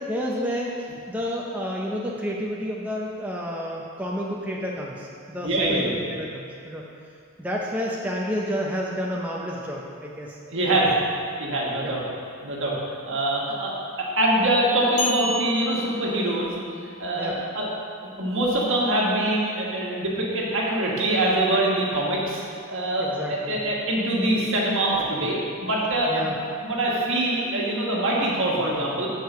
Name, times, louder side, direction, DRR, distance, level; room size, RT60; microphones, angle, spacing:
voice 1, 0.1-6.8 7.4-10.4 11.8-11.9 17.2-17.4 23.0-23.6 26.1-26.4, equal, 5° right, -4 dB, 0.5 m, -30 dB
voice 2, 5.4-6.0 10.5-10.9 11.4-12.0 12.4-12.7 13.1-16.5 17.0-17.7 18.2-26.3 26.6-29.1, right 1 dB, 60° right, -4 dB, 1.5 m, -24 dB
sound 1, 15.0-16.8, left 1 dB, 75° left, 1.0 m, -31 dB
6.6 x 4.7 x 6.6 m, 2.4 s
head